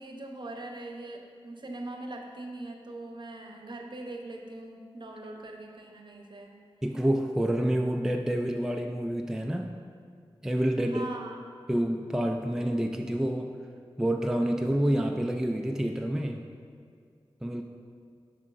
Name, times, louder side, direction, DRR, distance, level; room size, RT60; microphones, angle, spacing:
voice 1, 0.0-6.5 10.9-11.4, right 2 dB, 50° right, 2 dB, 0.8 m, -41 dB
voice 2, 6.8-9.8 10.4-11.1 11.7-13.5 14.0-16.4 17.4-17.6, right 1 dB, 5° right, 3 dB, 0.4 m, -28 dB
7.0 x 6.4 x 2.5 m, 2.2 s
cardioid pair, 45°, 10 cm